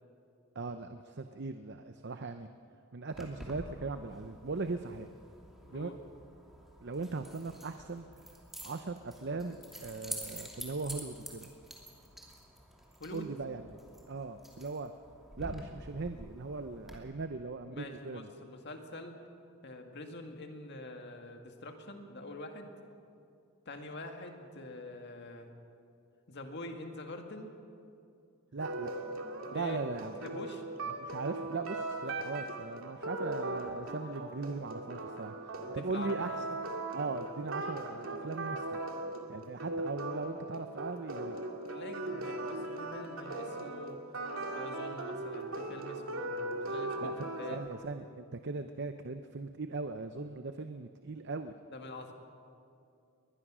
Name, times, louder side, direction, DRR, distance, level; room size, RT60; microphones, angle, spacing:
voice 1, 0.5-2.5 2.9-5.1 5.7-5.9 6.8-8.1 8.6-11.5 13.1-13.6 14.1-14.9 15.4-18.3 28.5-28.9 29.5-30.1 30.9-35.4 35.7-36.4 36.9-38.8 39.3-41.4 47.0-47.1 47.5-51.5, right 3 dB, 55° right, 9 dB, 0.7 m, -39 dB
Keys jangling, 3.1-16.9, equal, ahead, 2.7 m, -48 dB
voice 2, 5.6-6.0 13.0-13.3 17.7-19.2 19.6-22.7 23.7-25.5 26.3-27.5 28.8-29.1 29.5-29.8 30.2-30.6 35.6-36.3 41.6-44.0 44.5-47.7 51.7-52.1, left 2 dB, 55° left, 4 dB, 2.0 m, -45 dB
sound 1, 28.6-47.7, right 2 dB, 80° right, 2.4 m, -39 dB
21.5 x 21.0 x 6.2 m, 2.5 s
head